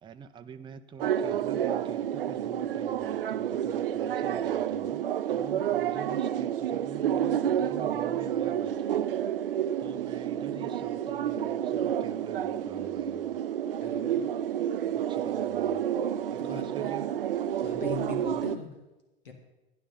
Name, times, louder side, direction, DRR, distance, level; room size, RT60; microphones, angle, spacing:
voice 1, 0.0-5.0 5.3-9.2 9.8-13.4 14.8-15.9 16.3-17.1, right 7 dB, 15° right, 9 dB, 0.6 m, -46 dB
sound 1, 1.0-18.6, right 10 dB, 70° right, 0.6 m, -29 dB
voice 2, 13.8-14.2 16.4-16.6 17.6-18.7 19.2-19.3, left 5 dB, 70° left, 4 dB, 2.2 m, -40 dB
12.5 x 10.5 x 5.6 m, 1.1 s
figure-of-eight pair, 90°, 29 cm